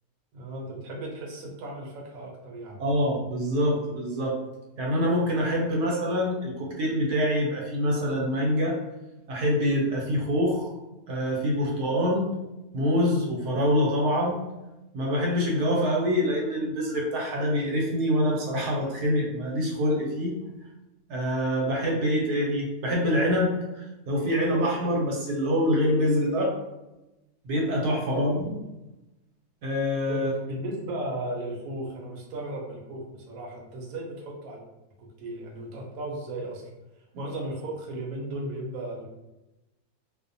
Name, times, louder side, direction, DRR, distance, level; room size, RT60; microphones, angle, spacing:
voice 1, 0.3-2.8 28.0-28.4 30.1-34.6 35.0-36.6 37.2-39.1, right 1 dB, 70° right, -1 dB, 1.0 m, -35 dB
voice 2, 2.8-4.4 4.8-8.8 9.3-10.7 11.1-12.3 12.7-14.4 14.9-20.4 21.1-26.5 27.4-28.5 29.6-30.3, equal, 90° right, -2 dB, 1.2 m, -25 dB
2.7 x 2.0 x 2.6 m, 0.98 s
omnidirectional pair, 1.6 m